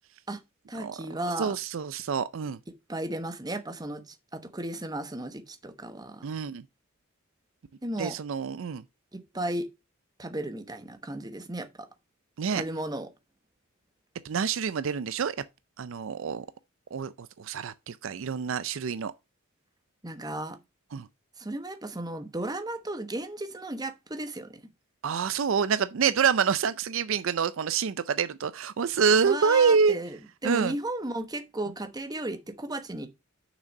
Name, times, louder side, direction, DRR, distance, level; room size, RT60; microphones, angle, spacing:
voice 1, 0.7-1.5 2.9-6.3 7.8-8.2 9.1-9.7 10.2-11.9 12.5-13.1 20.0-20.6 21.4-24.6 29.2-30.2 30.4-33.1, right 1 dB, 20° right, 1.1 m, -34 dB
voice 2, 1.4-2.6 6.2-6.6 8.0-8.8 12.4-12.6 14.2-15.4 15.8-16.5 16.9-19.1 20.9-21.1 25.0-30.0 30.4-30.7, right 6 dB, 65° right, 0.4 m, -27 dB
6.5 x 6.1 x 5.3 m
head